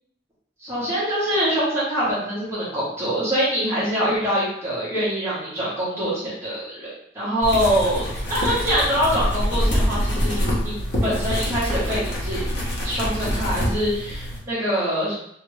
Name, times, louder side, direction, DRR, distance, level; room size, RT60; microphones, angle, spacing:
voice 1, 0.6-6.9 7.1-12.4 12.8-15.1, equal, 15° right, -10 dB, 1.2 m, -24 dB
sound 1, 7.4-14.4, equal, 70° left, 0.9 m, -25 dB
2.8 x 2.5 x 3.2 m, 0.72 s
head